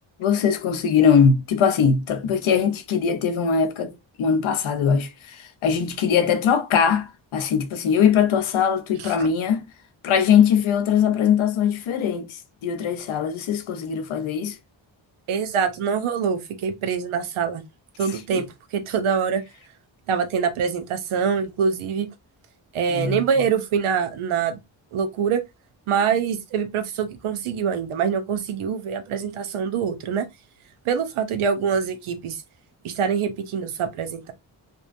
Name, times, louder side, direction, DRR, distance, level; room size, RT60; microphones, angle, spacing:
voice 1, 0.2-3.9 4.2-9.6 10.0-14.6 18.3-18.4 22.9-23.2, left 7 dB, 80° left, 0.6 m, -21 dB
voice 2, 15.3-17.6 18.0-18.5 18.7-19.4 20.1-22.1 22.7-24.6 24.9-25.4 25.9-30.3 30.9-32.4 32.8-34.3, right 6 dB, 90° right, 0.6 m, -24 dB
2.6 x 2.2 x 2.5 m
cardioid pair, 50°, 48 cm